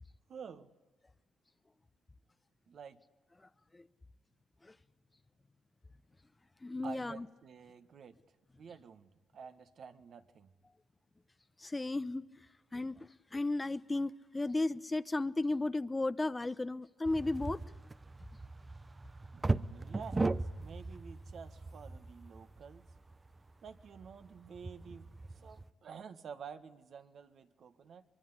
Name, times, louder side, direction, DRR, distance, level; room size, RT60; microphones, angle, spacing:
voice 1, 0.3-0.7 2.7-3.0 6.8-8.2 8.6-10.5 19.3-22.8 23.6-28.0, right 6 dB, 60° right, 1.7 m, -50 dB
voice 2, 3.4-3.8 4.6-4.8 6.6-7.2 11.6-12.5 12.7-17.6, left 2 dB, 20° left, 0.9 m, -35 dB
sound 1, 17.0-25.7, right 3 dB, 20° right, 0.8 m, -39 dB
23.5 x 23.0 x 10.0 m
cardioid pair, 90°, 0 cm